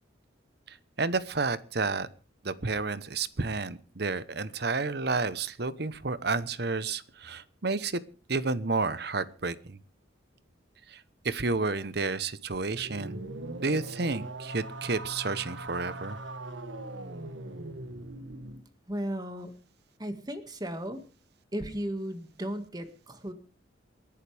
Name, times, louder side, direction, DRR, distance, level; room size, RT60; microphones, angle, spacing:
voice 1, 0.7-2.1 2.4-8.0 8.3-9.8 10.9-13.2 13.6-16.2, right 3 dB, 55° right, 15 dB, 1.0 m, -31 dB
sound 1, 12.7-18.6, right 2 dB, 80° right, 1.5 m, -40 dB
voice 2, 18.9-19.5 20.0-21.0 21.5-23.3, equal, 20° right, 8 dB, 2.0 m, -35 dB
28.0 x 11.0 x 3.5 m, 0.35 s
head